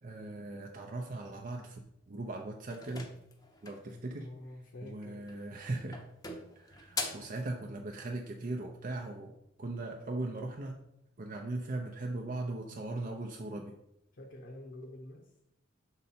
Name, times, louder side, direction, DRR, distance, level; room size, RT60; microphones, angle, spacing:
voice 1, 0.0-1.8 2.1-3.1 3.6-4.3 4.8-6.0 6.6-9.3 9.6-10.7 11.2-13.7, right 2 dB, 45° right, 1 dB, 0.6 m, -39 dB
sound 1, 2.7-3.9 5.2-5.6 5.9-7.4, left 3 dB, 20° left, 0.7 m, -41 dB
voice 2, 3.9-5.3 14.1-15.3, left 1 dB, 60° left, -1 dB, 0.8 m, -48 dB
6.5 x 4.0 x 4.2 m, 0.81 s
head